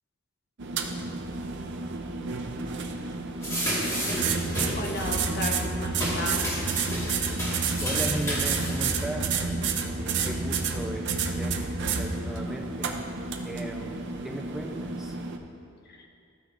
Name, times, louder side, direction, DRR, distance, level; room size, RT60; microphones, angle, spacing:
sound 1, 0.6-15.4, right 4 dB, 50° right, 0.6 m, -30 dB
sound 2, 3.4-5.3 5.9-9.0, equal, 15° left, 1.7 m, -32 dB
voice 1, 4.7-6.6 15.9-16.1, left 2 dB, 45° left, 2 dB, 0.9 m, -35 dB
voice 2, 7.5-9.4 10.0-12.9 13.4-15.2, right 1 dB, ahead, 1 dB, 0.5 m, -37 dB
14.0 x 6.3 x 2.5 m, 2.4 s
head